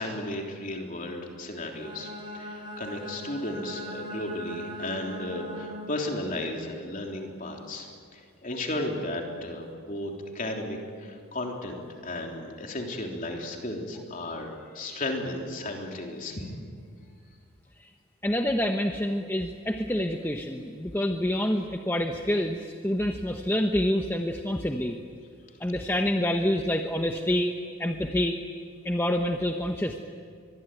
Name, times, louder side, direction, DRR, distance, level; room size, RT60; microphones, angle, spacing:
voice 1, 0.0-7.9 8.1-16.5, left 1 dB, 35° left, 1 dB, 3.5 m, -34 dB
Bowed string instrument, 1.6-6.1, equal, 20° right, 4.0 m, -39 dB
voice 2, 18.2-25.0 25.6-27.5 27.8-28.4 28.8-30.0, left 1 dB, 10° left, 3 dB, 0.9 m, -27 dB
24.0 x 22.0 x 9.3 m, 2.2 s
head